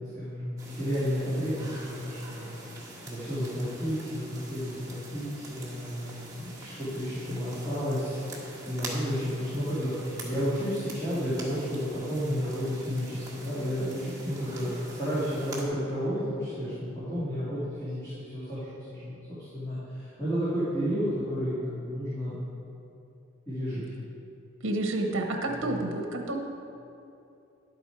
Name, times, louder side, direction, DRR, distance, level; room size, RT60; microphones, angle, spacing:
voice 1, 0.0-22.4 23.5-23.8 25.6-25.7, equal, 15° left, -13 dB, 2.4 m, -32 dB
sound 1, 0.6-15.7, right 2 dB, 15° right, 1.5 m, -44 dB
voice 2, 24.6-26.4, right 2 dB, 70° right, 3 dB, 0.9 m, -29 dB
11.0 x 8.0 x 4.6 m, 2.7 s
head